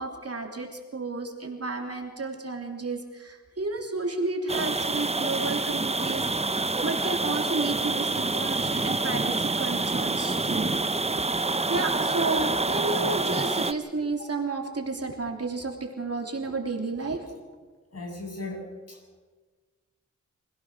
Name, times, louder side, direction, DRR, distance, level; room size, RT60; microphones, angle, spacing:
voice 1, 0.0-6.2 6.5-10.8 11.2-11.3 11.7-17.2, right 3 dB, 50° right, 2 dB, 3.4 m, -32 dB
sound 1, 4.5-13.7, right 3 dB, 20° right, 0.9 m, -27 dB
voice 2, 17.9-18.6 18.9-19.2, left 2 dB, 55° left, 0 dB, 7.5 m, -37 dB
26.0 x 16.5 x 6.3 m, 1.4 s
wide cardioid pair, 65°, 30 cm